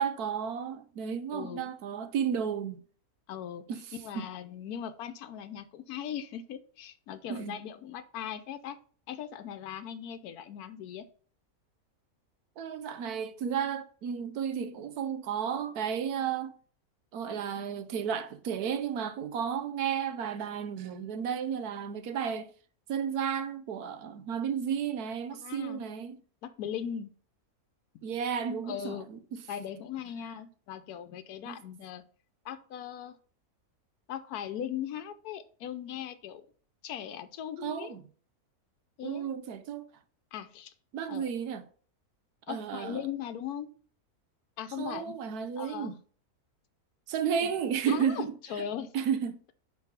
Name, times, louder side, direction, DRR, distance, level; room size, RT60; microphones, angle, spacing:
voice 1, 0.0-2.8 3.7-3.8 4.1-4.2 7.3-7.6 12.6-16.5 17.1-22.5 22.9-26.2 28.0-29.2 31.4-31.6 37.6-38.0 39.0-39.9 40.9-41.6 42.5-43.0 44.8-46.0 47.1-48.3 48.9-49.4, right 7 dB, 80° right, 1.3 m, -33 dB
voice 2, 1.3-1.7 3.3-3.7 3.9-8.8 9.1-11.1 25.4-25.8 26.4-27.1 28.6-29.1 29.5-32.0 32.4-33.2 34.1-36.4 36.8-38.0 39.0-39.3 40.3-40.7 41.1-41.3 42.5-43.7 44.6-45.2 45.6-46.0 47.4-47.5 47.9-48.9, left 9 dB, 80° left, 1.2 m, -39 dB
5.5 x 4.8 x 5.6 m
omnidirectional pair, 1.6 m